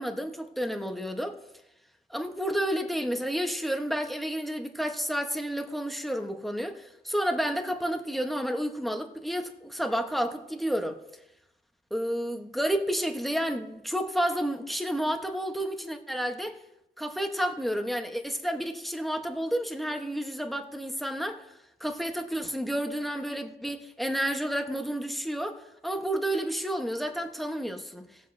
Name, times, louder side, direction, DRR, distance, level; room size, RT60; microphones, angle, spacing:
voice 1, 0.0-1.4 2.1-11.0 11.9-16.6 17.0-21.5 21.8-28.1, equal, ahead, 1.0 m, -30 dB
20.0 x 7.5 x 2.7 m
wide cardioid pair, 105°, 20 cm